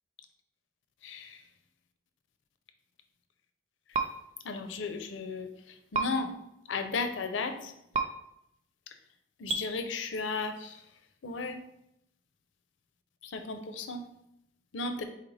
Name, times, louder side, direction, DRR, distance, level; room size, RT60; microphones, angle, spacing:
voice 1, 1.0-1.4 4.4-6.4 6.7-7.7 9.4-10.8 11.2-11.6 13.2-14.1 14.7-15.0, left 4 dB, 85° left, 7 dB, 0.5 m, -35 dB
sound 1, 3.9-4.1 5.9-6.1 7.9-8.1 9.5-9.6, right 4 dB, 35° right, 0.3 m, -28 dB
4.1 x 3.9 x 3.3 m, 0.80 s
head